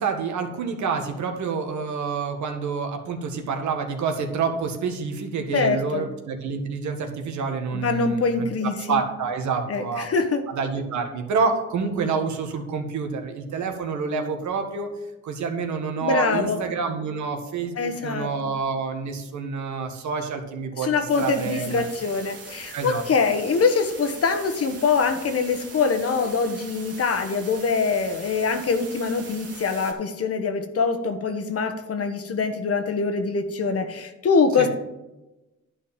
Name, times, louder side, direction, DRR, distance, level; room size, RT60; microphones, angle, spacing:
voice 1, 0.0-10.1 10.5-14.9 15.2-21.8 22.7-23.0 34.6-34.7, right 5 dB, 70° right, 5 dB, 1.7 m, -28 dB
voice 2, 5.5-6.1 7.7-9.0 9.7-10.4 16.0-16.6 17.8-18.3 20.8-34.7, left 4 dB, 50° left, 8 dB, 1.3 m, -24 dB
sound 1, 21.1-29.9, right 4 dB, 50° right, 2.4 m, -42 dB
11.0 x 4.5 x 7.2 m, 0.99 s
cardioid pair, 90°, 30 cm